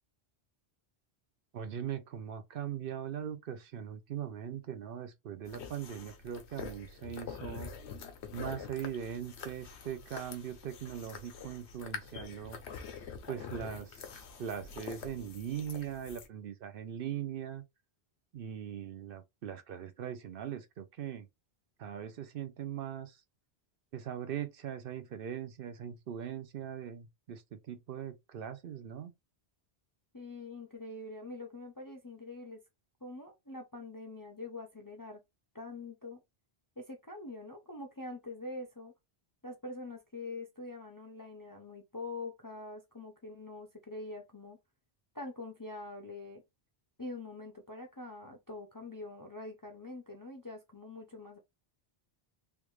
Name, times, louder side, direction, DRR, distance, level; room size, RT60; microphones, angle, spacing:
voice 1, 1.5-7.7 8.3-12.6 13.3-17.6 18.3-21.3 21.8-23.2 23.9-29.1, right 9 dB, 65° right, 0.7 m, -40 dB
sound 1, 5.5-16.3, left 6 dB, 85° left, 1.0 m, -46 dB
voice 2, 30.1-32.6 33.0-35.2 35.5-36.2 36.8-38.9 39.4-44.6 45.1-46.4 47.0-51.4, left 2 dB, 25° left, 0.5 m, -44 dB
3.4 x 2.4 x 3.1 m
omnidirectional pair, 1.1 m